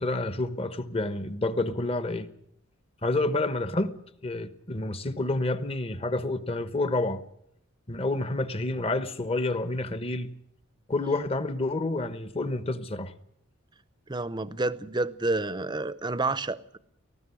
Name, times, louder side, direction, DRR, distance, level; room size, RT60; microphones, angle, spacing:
voice 1, 0.0-2.3 3.0-4.0 4.2-7.2 7.9-10.3 10.9-13.1, left 2 dB, 30° left, 1.1 m, -29 dB
voice 2, 14.1-16.8, right 2 dB, 20° right, 0.7 m, -29 dB
19.0 x 15.0 x 9.7 m
head